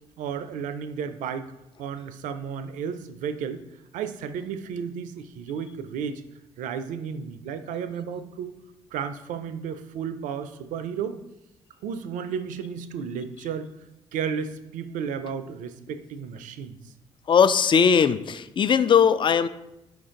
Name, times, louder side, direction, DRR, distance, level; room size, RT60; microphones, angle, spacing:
voice 1, 0.2-1.5 1.8-3.6 3.9-6.2 6.6-8.6 8.9-11.2 11.8-13.7 14.1-16.8, right 7 dB, 65° right, 11 dB, 0.4 m, -33 dB
voice 2, 17.3-19.5, left 7 dB, 35° left, 13 dB, 0.3 m, -19 dB
4.9 x 2.6 x 3.7 m, 0.89 s
hypercardioid pair, 45°, 14 cm